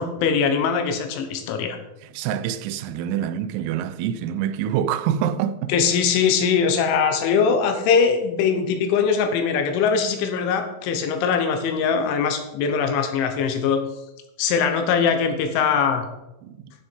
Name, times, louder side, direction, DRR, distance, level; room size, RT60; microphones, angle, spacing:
voice 1, 0.0-1.8 5.7-13.8 14.4-16.1, left 6 dB, 75° left, 3.2 m, -21 dB
voice 2, 2.1-5.7 16.4-16.7, right 9 dB, 85° right, 3.3 m, -26 dB
12.5 x 6.5 x 4.4 m
omnidirectional pair, 5.9 m